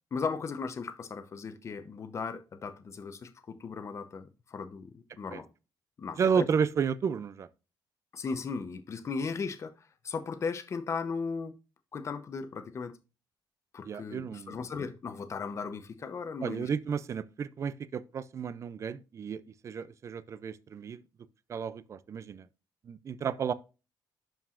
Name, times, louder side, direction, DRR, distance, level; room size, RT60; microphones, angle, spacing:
voice 1, 0.1-5.5 6.0-6.5 8.1-11.5 11.9-12.9 13.7-16.7, left 5 dB, 35° left, 0.7 m, -37 dB
voice 2, 6.2-7.5 13.8-14.6 16.4-21.0 21.5-22.5 22.9-23.5, right 6 dB, 40° right, 0.4 m, -32 dB
11.5 x 4.7 x 2.5 m
cardioid pair, 135°, 8 cm